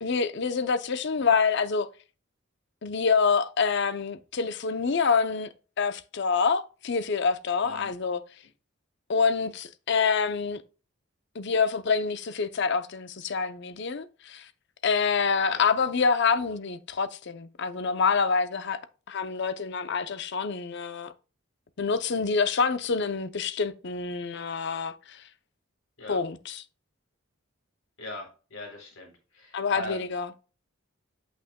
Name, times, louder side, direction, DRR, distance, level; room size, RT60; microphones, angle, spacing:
voice 1, 0.0-1.9 2.8-5.5 5.8-8.2 9.1-10.6 11.3-14.5 14.8-18.8 19.1-21.1 21.8-25.2 26.1-26.6 29.5-30.3, left 5 dB, 55° left, 0.6 m, -26 dB
voice 2, 28.0-30.1, left 1 dB, 75° left, 3.5 m, -40 dB
8.5 x 6.0 x 2.2 m
head